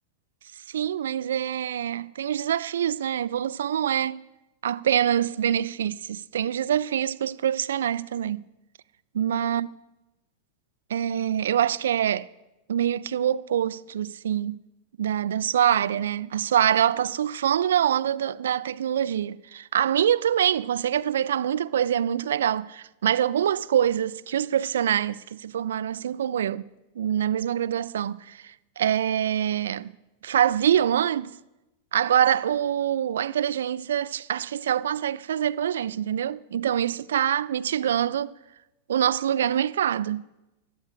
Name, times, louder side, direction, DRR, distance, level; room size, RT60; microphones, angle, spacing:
voice 1, 0.7-4.2 4.6-8.4 9.1-9.7 10.9-12.3 12.7-14.6 15.0-26.7 27.0-29.9 30.2-31.3 31.9-38.3 38.9-40.3, right 10 dB, 65° right, 0.3 m, -25 dB
20.0 x 14.0 x 2.4 m
figure-of-eight pair, 90°, 0 cm